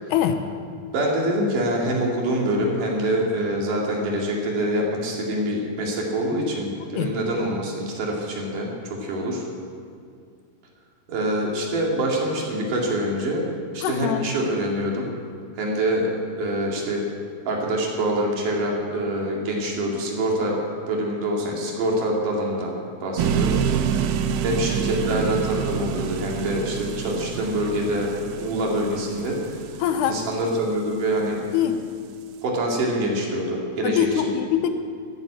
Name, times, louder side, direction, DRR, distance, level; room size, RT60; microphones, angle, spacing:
voice 1, 0.9-8.7 9.0-9.4 11.1-15.0 15.6-16.1 16.4-17.0 17.5-20.6 20.9-22.7 23.0-24.0 24.4-28.1 28.4-29.4 30.0-31.4 32.4-34.1, right 1 dB, 55° right, -2 dB, 3.6 m, -25 dB
voice 2, 13.8-14.2 23.2-23.4 29.8-30.2 31.5-31.8 33.8-34.7, left 10 dB, 80° left, 8 dB, 2.9 m, -23 dB
sound 1, 23.2-31.2, right 7 dB, 80° right, 2.6 m, -27 dB
13.5 x 10.5 x 8.5 m, 2.3 s
omnidirectional pair, 4.9 m